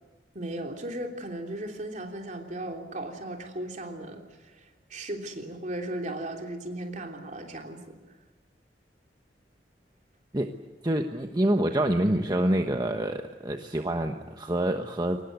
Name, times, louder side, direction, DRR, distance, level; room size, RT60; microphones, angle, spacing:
voice 1, 0.3-4.2 4.5-8.0, right 1 dB, 45° right, 3 dB, 3.3 m, -36 dB
voice 2, 10.8-15.2, right 1 dB, 25° right, 5 dB, 1.1 m, -26 dB
23.5 x 20.0 x 9.5 m, 1.1 s
head